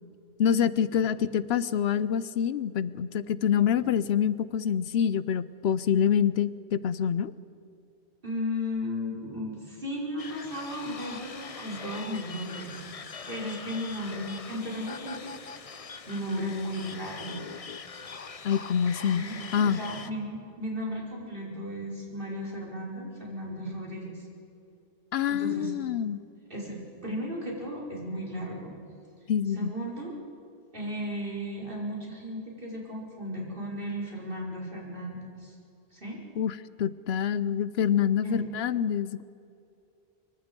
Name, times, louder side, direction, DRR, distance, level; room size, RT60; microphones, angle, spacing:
voice 1, 0.4-7.3 18.4-19.8 25.1-26.2 29.3-29.7 36.4-39.2, left 8 dB, 75° left, 16 dB, 0.9 m, -26 dB
voice 2, 8.2-12.8 13.3-15.3 16.1-17.4 19.1-19.4 19.6-24.1 25.3-25.7 26.5-26.8 27.0-28.7 29.5-30.1 30.7-35.6 35.9-36.2 38.2-38.4, equal, 55° right, -3 dB, 5.2 m, -35 dB
sound 1, 10.2-20.1, left 5 dB, 40° left, 0.8 m, -42 dB
24.0 x 23.5 x 5.3 m, 2.7 s
omnidirectional pair, 1.1 m